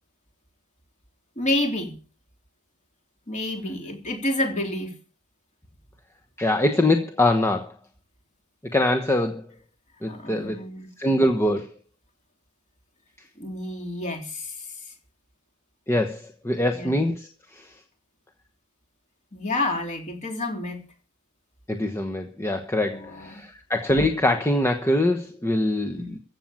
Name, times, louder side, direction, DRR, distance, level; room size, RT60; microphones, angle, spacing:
voice 1, 1.4-2.0 3.3-5.0 10.1-10.9 13.4-14.9 16.7-17.0 19.3-20.9 22.8-23.4 25.9-26.2, left 1 dB, 35° left, 3.5 m, -29 dB
voice 2, 6.4-7.7 8.7-9.4 10.0-10.6 11.0-11.7 15.9-17.3 17.5-17.7 21.7-26.2, left 1 dB, 10° left, 1.1 m, -23 dB
15.0 x 7.4 x 9.0 m
head